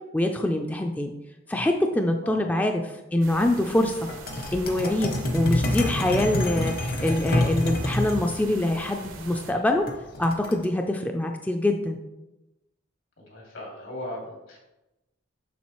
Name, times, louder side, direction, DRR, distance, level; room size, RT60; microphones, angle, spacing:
voice 1, 0.1-1.1 1.5-2.8 3.1-4.0 4.5-9.8 10.2-12.0, left 1 dB, 10° left, 3 dB, 0.3 m, -24 dB
voice 2, 2.2-2.8 13.2-14.6, left 1 dB, 80° left, -2 dB, 2.4 m, -39 dB
sound 1, 3.2-9.5, right 3 dB, 85° right, 0.9 m, -43 dB
sound 2, 4.1-8.2 9.9-10.6, left 1 dB, 50° left, 0.9 m, -27 dB
7.2 x 6.3 x 3.0 m, 1.0 s
head